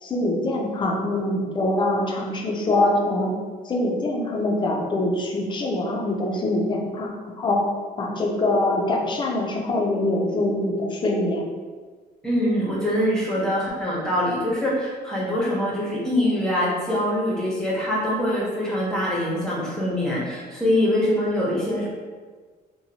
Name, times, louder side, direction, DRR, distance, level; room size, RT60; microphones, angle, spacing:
voice 1, 0.0-3.3 3.6-7.6 8.0-11.4, left 2 dB, 30° left, 0 dB, 0.5 m, -24 dB
voice 2, 12.2-21.9, left 1 dB, 5° left, -6 dB, 0.9 m, -24 dB
2.7 x 2.2 x 2.8 m, 1.5 s
cardioid pair, 110°, 17 cm